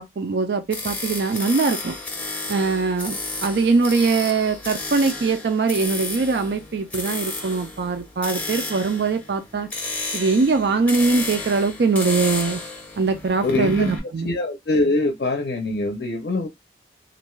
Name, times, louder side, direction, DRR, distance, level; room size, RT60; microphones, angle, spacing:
voice 1, 0.0-1.9 2.5-9.7 10.1-12.6 13.0-14.3, right 4 dB, 65° right, 0.4 m, -22 dB
sound 1, 0.7-14.0, left 2 dB, 10° left, 0.6 m, -32 dB
voice 2, 13.4-13.9 14.2-16.5, left 2 dB, 65° left, 0.5 m, -23 dB
2.5 x 2.2 x 3.0 m
head